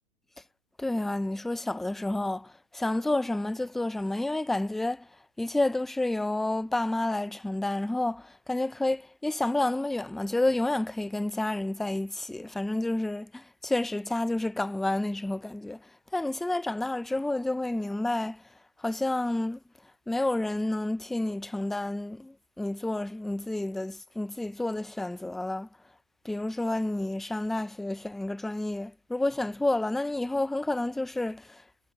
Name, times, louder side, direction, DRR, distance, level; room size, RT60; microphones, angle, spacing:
voice 1, 0.8-5.1 5.4-18.4 18.8-19.6 20.1-25.7 26.2-31.6, left 2 dB, ahead, 0.3 m, -30 dB
hypercardioid pair, 110°, 38 cm